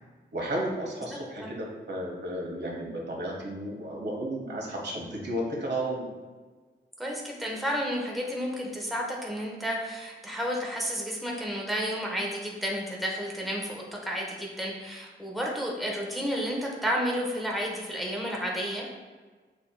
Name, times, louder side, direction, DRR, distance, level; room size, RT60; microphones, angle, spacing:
voice 1, 0.3-6.1, right 1 dB, 60° right, -2 dB, 1.1 m, -33 dB
voice 2, 7.0-19.0, equal, ahead, -2 dB, 0.8 m, -31 dB
6.7 x 2.8 x 2.3 m, 1.4 s
wide cardioid pair, 95°, 20 cm